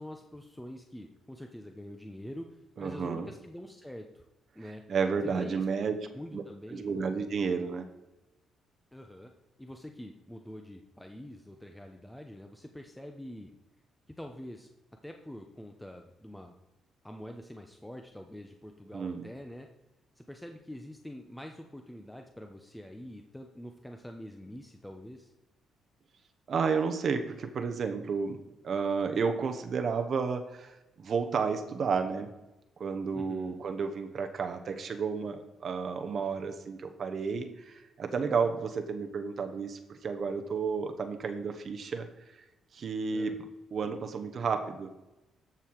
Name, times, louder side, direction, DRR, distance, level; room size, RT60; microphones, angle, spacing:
voice 1, 0.0-4.3 4.5-4.8 5.2-5.6 6.1-7.1 8.9-9.3 9.6-13.5 14.1-14.7 15.0-16.5 17.0-19.7 20.2-25.3 33.1-33.6 43.1-43.4, left 1 dB, 5° left, 4 dB, 0.9 m, -45 dB
voice 2, 2.8-3.3 4.9-6.0 6.3-6.4 6.7-7.9 18.9-19.3 26.5-28.4 28.6-32.3 32.8-42.1 42.7-43.3 43.7-44.9, right 5 dB, 55° right, 6 dB, 1.0 m, -31 dB
13.5 x 5.6 x 4.7 m, 1.0 s
cardioid pair, 90°, 0 cm